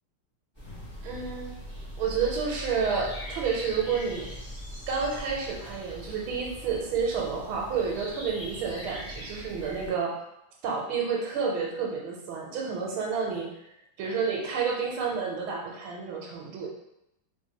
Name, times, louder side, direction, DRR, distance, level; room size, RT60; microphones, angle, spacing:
sound 1, 0.6-9.9, equal, 15° left, 1.1 m, -41 dB
voice 1, 1.0-1.5 2.0-4.3 4.9-10.2 10.6-13.5 14.0-16.7, right 5 dB, 85° right, -1 dB, 1.5 m, -30 dB
3.3 x 3.1 x 2.8 m, 0.83 s
omnidirectional pair, 2.3 m